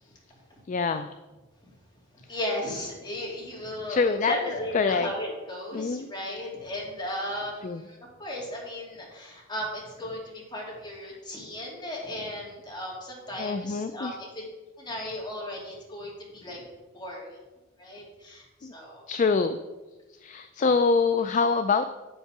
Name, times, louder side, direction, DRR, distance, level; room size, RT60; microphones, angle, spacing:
voice 1, 0.7-1.1 3.9-4.4 4.7-5.1 5.7-6.1 7.6-7.8 13.4-14.2 18.6-18.7 19.1-19.6 20.2-21.9, left 4 dB, 40° left, 9 dB, 0.3 m, -25 dB
voice 2, 2.1-14.4 14.8-16.6 16.9-17.3 17.8-19.0, left 1 dB, 25° left, -4 dB, 2.5 m, -35 dB
7.7 x 5.5 x 5.8 m, 1.2 s
head